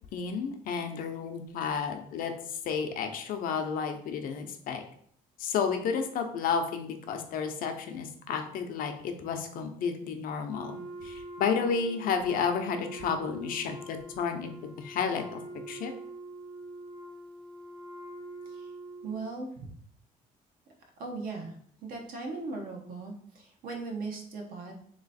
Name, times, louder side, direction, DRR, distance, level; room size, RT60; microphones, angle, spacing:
voice 1, 0.1-4.8 5.4-14.5 14.8-15.4 15.7-15.9, left 6 dB, 65° left, 6 dB, 0.6 m, -31 dB
Wind instrument woodwind instrument, 10.5-19.3, right 1 dB, 30° right, 0.9 m, -44 dB
voice 2, 19.0-19.7 21.0-21.5 21.8-24.7, right 3 dB, 70° right, 2 dB, 1.0 m, -38 dB
3.2 x 3.0 x 4.1 m, 0.63 s
cardioid pair, 145°, 15 cm